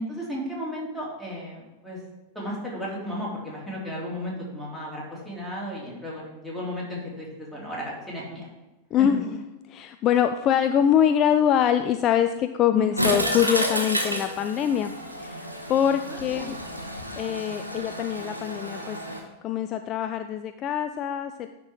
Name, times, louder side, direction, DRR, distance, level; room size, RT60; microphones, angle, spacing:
voice 1, 0.0-2.0 2.3-8.5 12.7-13.0 16.1-16.5, equal, ahead, -6 dB, 2.8 m, -34 dB
voice 2, 8.9-9.4 9.7-14.9 15.2-16.6 17.2-19.0 19.4-21.5, left 9 dB, 35° left, 8 dB, 0.3 m, -24 dB
Toilet flush, 13.0-19.2, equal, 85° right, 1.1 m, -30 dB
10.5 x 3.7 x 4.6 m, 1.1 s
figure-of-eight pair, 90°, 0 cm